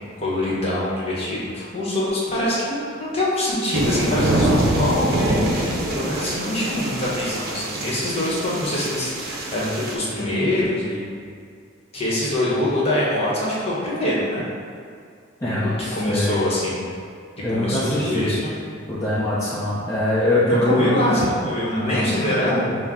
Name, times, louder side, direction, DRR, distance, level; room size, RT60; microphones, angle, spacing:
voice 1, 0.2-5.4 5.9-11.1 11.9-14.5 15.4-15.6 15.9-16.8 17.5-18.5 20.5-22.6, left 1 dB, 30° left, -7 dB, 1.0 m, -24 dB
sound 1, 3.7-9.9, right 1 dB, 55° right, 0.6 m, -24 dB
voice 2, 15.4-16.4 17.4-18.3 18.9-20.9 21.7-22.1 22.5-22.8, left 1 dB, 15° left, -11 dB, 0.6 m, -23 dB
5.5 x 2.1 x 3.6 m, 2.2 s
head